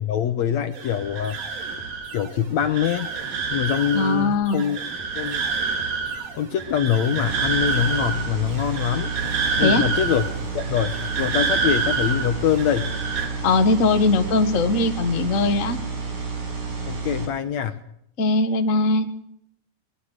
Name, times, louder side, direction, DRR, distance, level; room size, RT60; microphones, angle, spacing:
voice 1, 0.0-1.4 2.1-3.1 3.5-4.8 5.2-5.4 6.4-9.1 9.6-12.9 16.8-17.8, left 9 dB, 65° left, 10 dB, 2.0 m, -24 dB
sound 1, 0.7-13.3, right 5 dB, 90° right, 5.1 m, -28 dB
voice 2, 3.9-4.6 9.6-9.9 13.4-15.8 18.2-19.1, left 3 dB, 35° left, 7 dB, 1.4 m, -20 dB
sound 2, 7.3-17.3, right 4 dB, 60° right, 6.5 m, -31 dB
22.0 x 21.5 x 6.6 m, 0.72 s
omnidirectional pair, 3.9 m